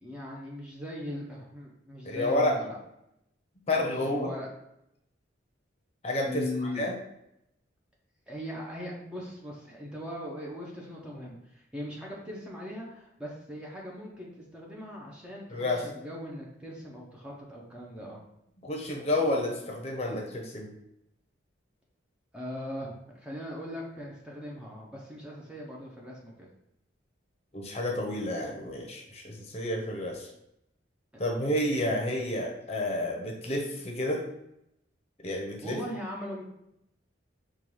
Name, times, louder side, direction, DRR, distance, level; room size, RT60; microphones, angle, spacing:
voice 1, 0.0-2.8 3.7-4.5 6.2-6.9 8.3-18.2 22.3-26.5 35.6-36.4, left 1 dB, 5° right, -3 dB, 0.5 m, -39 dB
voice 2, 2.0-2.5 3.7-4.3 6.0-7.0 15.5-15.8 18.6-20.7 27.5-30.3 31.2-34.3 35.2-35.8, left 1 dB, 30° left, 0 dB, 0.7 m, -30 dB
5.3 x 2.3 x 3.1 m, 0.80 s
head